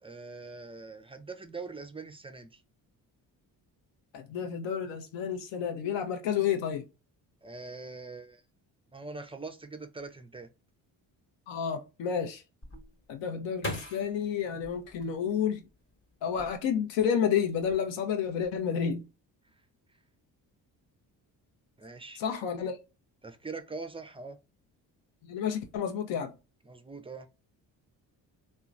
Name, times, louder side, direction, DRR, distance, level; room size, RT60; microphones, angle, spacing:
voice 1, 0.0-2.6 7.4-8.4 8.9-10.5 21.8-22.2 23.2-24.4 26.7-27.3, right 3 dB, 15° right, 0.4 m, -42 dB
voice 2, 4.1-6.9 11.5-12.4 13.1-15.6 16.2-19.1 22.2-22.8 25.2-26.3, left 8 dB, 70° left, 0.7 m, -30 dB
sound 1, 12.6-15.7 16.2-17.0 17.3-17.8, left 1 dB, 25° left, 1.0 m, -41 dB
2.9 x 2.2 x 2.5 m
supercardioid pair, 60°, 46 cm